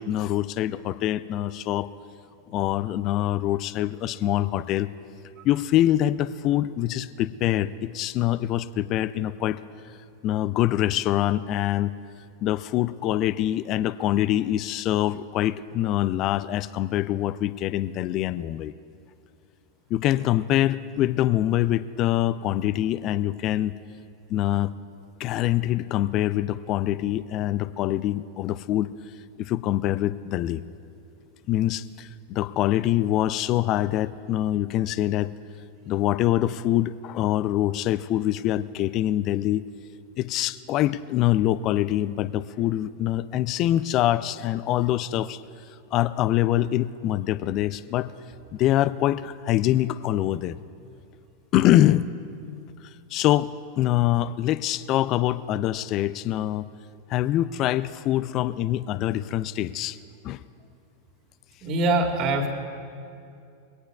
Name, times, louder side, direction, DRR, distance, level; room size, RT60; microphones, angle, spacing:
voice 1, 0.0-1.9 2.5-4.9 5.4-9.6 10.2-11.9 12.4-18.7 19.9-23.7 24.3-24.7 25.2-28.9 29.4-30.6 31.5-35.3 35.9-39.6 40.2-45.4 45.9-48.1 48.5-50.6 51.5-52.1 53.1-56.7 57.1-60.0 60.2-60.4, left 13 dB, 35° left, 16 dB, 0.4 m, -24 dB
voice 2, 61.6-62.5, right 2 dB, 35° right, 3 dB, 1.9 m, -23 dB
23.5 x 18.0 x 2.4 m, 2.5 s
figure-of-eight pair, 90°, 0 cm